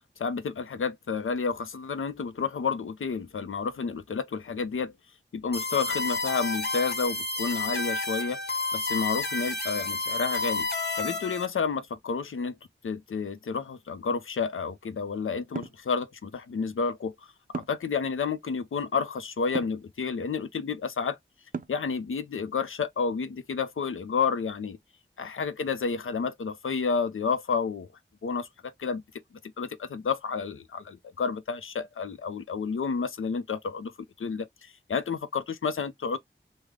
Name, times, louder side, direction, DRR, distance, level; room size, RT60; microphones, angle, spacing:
voice 1, 0.2-4.9 5.3-8.4 8.7-10.7 10.9-12.6 12.8-17.1 17.5-21.2 21.7-24.8 25.2-27.9 28.2-29.0 29.6-33.9 34.2-36.2, left 5 dB, 85° left, 0.5 m, -30 dB
sound 1, 5.5-11.5, left 3 dB, 55° left, 1.1 m, -30 dB
sound 2, 15.5-15.8 17.5-17.9 19.5-19.8 21.5-21.9, right 5 dB, 45° right, 0.4 m, -35 dB
3.2 x 2.1 x 3.5 m
wide cardioid pair, 40°, 20 cm